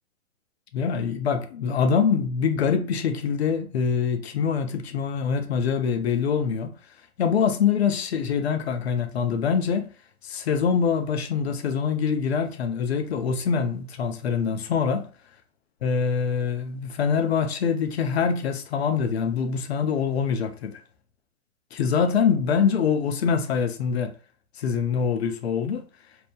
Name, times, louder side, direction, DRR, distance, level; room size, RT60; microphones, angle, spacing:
voice 1, 0.7-6.7 7.2-9.9 10.2-15.0 15.8-20.8 21.7-24.1 24.6-25.8, left 6 dB, 50° left, 0.5 m, -24 dB
3.0 x 2.0 x 2.2 m
hypercardioid pair, 145°, 43 cm